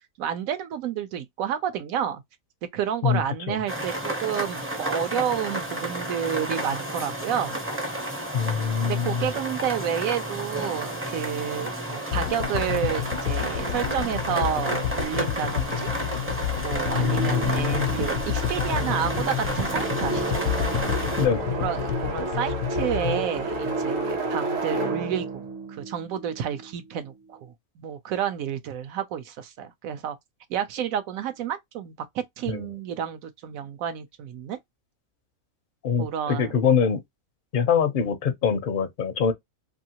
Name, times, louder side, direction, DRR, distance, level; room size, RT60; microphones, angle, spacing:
voice 1, 0.2-2.2 2.7-7.6 8.8-15.9 16.6-20.4 21.5-25.4 25.7-30.2 30.5-34.6 36.0-36.6, right 9 dB, 75° right, 1.0 m, -30 dB
sound 1, 3.7-21.3, right 1 dB, 15° right, 0.4 m, -31 dB
voice 2, 8.3-9.3 16.9-17.9 21.2-21.5 32.5-32.6 35.8-37.0 37.5-39.3, left 7 dB, 60° left, 0.5 m, -24 dB
sound 2, 12.1-24.4, left 11 dB, 85° left, 1.0 m, -30 dB
sound 3, 16.9-26.8, right 2 dB, 55° right, 1.1 m, -31 dB
2.7 x 2.7 x 2.8 m
omnidirectional pair, 1.5 m